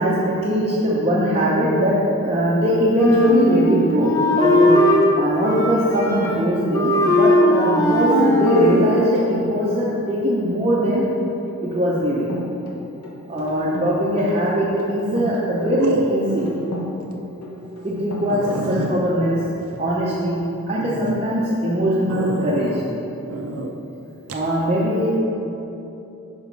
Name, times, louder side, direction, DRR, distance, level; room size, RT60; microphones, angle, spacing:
voice 1, 0.0-4.8 5.1-11.1 11.6-12.3 13.3-16.5 17.8-19.4 19.8-20.4 20.7-22.8 24.3-25.2, equal, 25° right, -8 dB, 0.7 m, -20 dB
Wind instrument woodwind instrument, 3.0-5.1 5.4-6.5 6.7-8.9, equal, 15° left, 0.5 m, -18 dB
sound 1, 3.2-5.0 6.2-6.5 6.9-7.2 7.6-8.0 8.3-8.7 9.1-9.5 10.7-11.5 12.3-14.0 14.3-16.9 17.4-18.9, right 1 dB, 85° left, 1.2 m, -36 dB
sound 2, 14.2-14.6 15.8-16.6 17.0-17.1 17.6-17.7 18.0-18.1 18.3-20.3 20.8-21.2 22.1-22.9 23.3-23.7 24.3-24.5, right 2 dB, 75° right, 0.6 m, -29 dB
5.5 x 4.8 x 5.2 m, 3.0 s
head